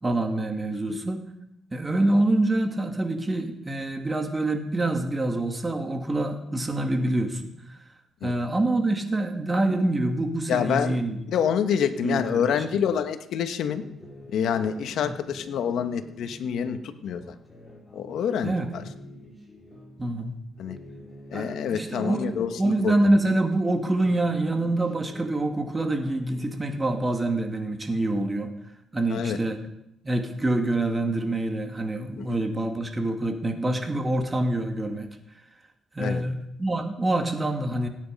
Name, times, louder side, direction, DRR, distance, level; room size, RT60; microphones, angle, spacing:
voice 1, 0.0-1.2 1.7-7.4 8.2-11.2 12.0-12.8 15.0-15.1 18.4-18.7 20.0-20.4 21.3-28.5 28.9-29.6 30.0-35.1 35.9-37.9, right 2 dB, 20° right, 5 dB, 2.2 m, -26 dB
voice 2, 10.5-11.0 11.3-13.8 14.3-17.2 17.9-18.8 20.6-20.8 21.3-23.2 29.1-29.4 32.2-32.4 36.0-36.2, left 8 dB, 75° left, 9 dB, 1.2 m, -27 dB
sound 1, 13.6-20.1 20.5-23.8 24.1-27.2, left 1 dB, 5° left, 4.4 m, -47 dB
17.5 x 9.7 x 5.4 m, 0.83 s
cardioid pair, 90°, 0 cm